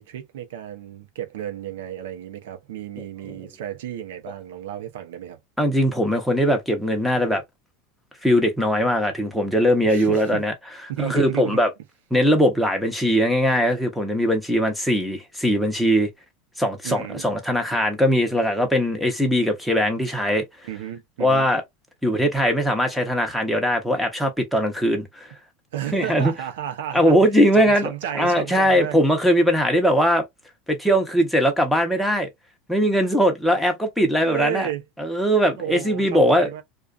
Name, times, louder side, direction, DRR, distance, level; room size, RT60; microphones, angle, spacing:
voice 1, 0.0-5.4 9.8-10.4 10.9-11.6 16.8-17.3 20.6-21.5 25.7-27.2 27.5-29.0 34.2-34.8 35.6-36.6, right 10 dB, 85° right, 0.7 m, -32 dB
voice 2, 5.6-7.4 8.2-10.5 11.0-11.7 12.1-16.1 16.6-20.4 21.2-21.6 22.0-25.3 25.9-26.3 26.9-30.2 30.7-32.3 32.7-34.7 35.0-36.5, equal, ahead, 0.8 m, -20 dB
2.4 x 2.3 x 2.4 m
supercardioid pair, 135°, 0 cm